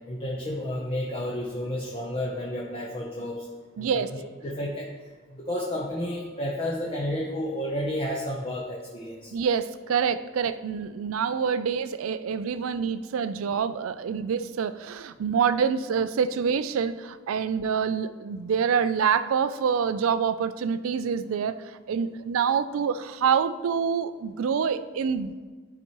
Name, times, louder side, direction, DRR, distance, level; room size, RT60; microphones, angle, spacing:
voice 1, 0.1-3.5 3.8-4.9 5.3-9.3, left 1 dB, 30° left, -2 dB, 0.7 m, -31 dB
voice 2, 3.8-4.1 9.3-21.6 21.9-25.3, right 6 dB, 80° right, 13 dB, 0.4 m, -26 dB
11.5 x 4.2 x 3.0 m, 1.3 s
head